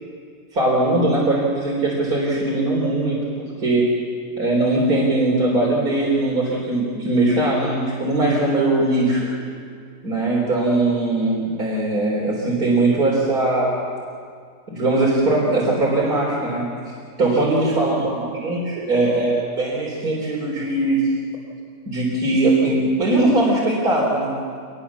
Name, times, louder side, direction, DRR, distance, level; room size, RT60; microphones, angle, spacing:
voice 1, 0.5-3.9 4.4-9.3 10.0-13.8 14.7-16.7 17.2-21.1 21.9-24.3, right 2 dB, 65° right, -5 dB, 4.4 m, -20 dB
25.5 x 21.0 x 7.2 m, 2.1 s
omnidirectional pair, 1.7 m